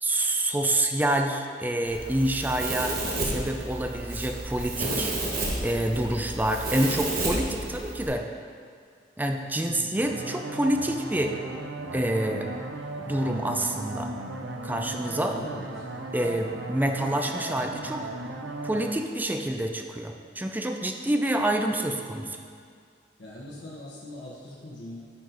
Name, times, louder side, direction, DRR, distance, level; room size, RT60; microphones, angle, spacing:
voice 1, 0.0-3.0 3.2-5.1 5.6-8.2 9.2-11.3 11.9-12.5 13.1-14.1 14.6-15.4 16.1-18.1 18.6-22.4, right 1 dB, 10° right, 4 dB, 0.4 m, -27 dB
Domestic sounds home sounds, 1.9-8.1, right 2 dB, 55° right, 1.3 m, -31 dB
voice 2, 9.6-9.9 15.3-15.7 23.2-25.1, left 1 dB, 85° left, -6 dB, 1.1 m, -41 dB
sound 1, 10.0-18.9, right 2 dB, 80° right, 0.6 m, -37 dB
9.7 x 4.3 x 4.0 m, 2.1 s
head